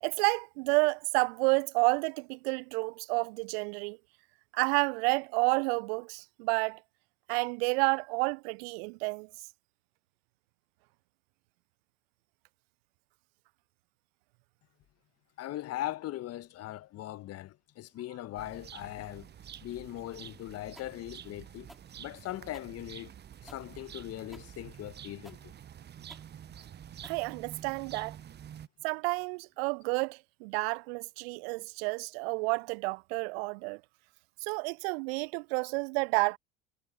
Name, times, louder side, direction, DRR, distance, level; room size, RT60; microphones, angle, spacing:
voice 1, 0.0-4.0 4.5-6.8 7.3-9.3 27.0-28.2 28.8-33.8 34.4-36.4, right 31 dB, 55° right, 0.6 m, -30 dB
voice 2, 15.4-19.3 19.6-21.7 22.0-23.1 23.4-25.5, left 14 dB, 40° left, 1.4 m, -40 dB
sound 1, 18.4-28.7, right 9 dB, 25° right, 1.0 m, -48 dB
sound 2, 20.8-27.8, equal, ahead, 4.8 m, -57 dB
figure-of-eight pair, 65°, 37 cm